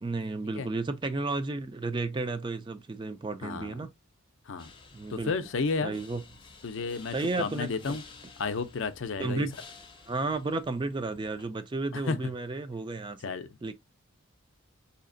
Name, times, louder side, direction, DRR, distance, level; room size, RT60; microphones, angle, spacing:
voice 1, 0.0-3.9 4.9-5.3 5.8-6.2 7.1-8.0 9.2-9.5 10.1-13.2 13.6-13.7, right 3 dB, 20° right, 0.3 m, -32 dB
voice 2, 3.4-3.9 4.5-4.7 5.1-6.0 6.6-8.0 8.4-9.5 11.9-12.2 13.2-13.5, left 4 dB, 65° left, 0.5 m, -32 dB
sound 1, 4.6-11.5, left 4 dB, 25° left, 0.6 m, -52 dB
4.1 x 2.8 x 2.5 m
head